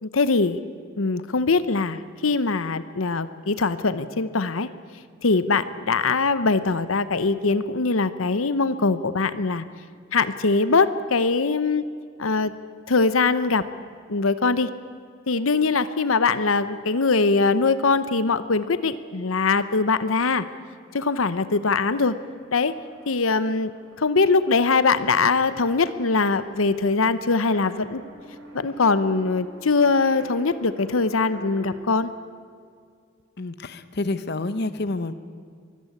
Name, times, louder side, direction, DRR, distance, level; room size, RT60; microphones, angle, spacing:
voice 1, 0.0-0.6 1.0-4.7 5.2-9.6 10.1-11.8 12.2-12.5 12.9-13.7 14.1-14.7 15.3-20.5 20.9-22.2 22.5-22.7 23.1-23.7 24.0-28.0 28.5-32.1, left 4 dB, 90° left, 14 dB, 0.9 m, -22 dB
sound 1, 20.6-31.8, equal, 90° right, 5.4 m, -47 dB
voice 2, 33.4-35.1, left 2 dB, 55° left, 13 dB, 0.8 m, -28 dB
24.0 x 15.0 x 8.6 m, 2.2 s
head